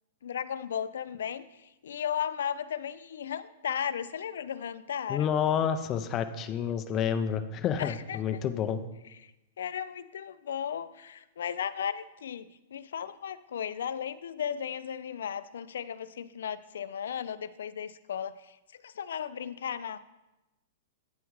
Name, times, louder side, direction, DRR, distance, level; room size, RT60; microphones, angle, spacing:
voice 1, 0.2-5.3 7.8-8.2 9.2-9.3 9.6-20.0, left 8 dB, 85° left, 15 dB, 0.4 m, -35 dB
voice 2, 5.1-8.8, left 8 dB, 25° left, 10 dB, 0.4 m, -29 dB
9.2 x 3.6 x 4.7 m, 0.98 s
hypercardioid pair, 160°, 0 cm